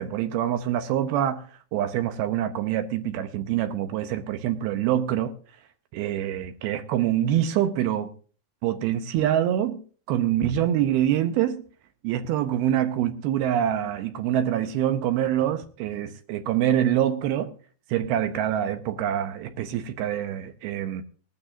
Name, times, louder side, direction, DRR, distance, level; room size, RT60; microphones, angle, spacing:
voice 1, 0.0-1.4 1.7-5.3 5.9-8.1 8.6-9.8 10.1-11.6 12.0-17.5 17.9-21.0, right 11 dB, 80° right, 2.4 m, -25 dB
19.0 x 12.5 x 2.6 m
omnidirectional pair, 4.9 m